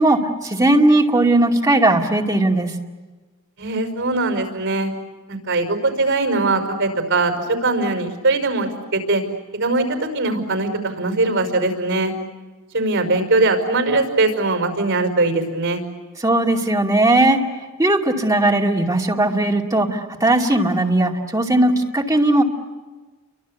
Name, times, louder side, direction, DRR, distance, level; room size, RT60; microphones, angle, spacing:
voice 1, 0.0-2.7 16.2-17.4 17.8-22.4, right 1 dB, 15° right, -1 dB, 2.5 m, -17 dB
voice 2, 3.6-4.9 5.3-9.2 9.5-12.1 12.7-15.8, right 2 dB, 60° right, 6 dB, 5.5 m, -21 dB
29.5 x 24.5 x 8.3 m, 1.3 s
head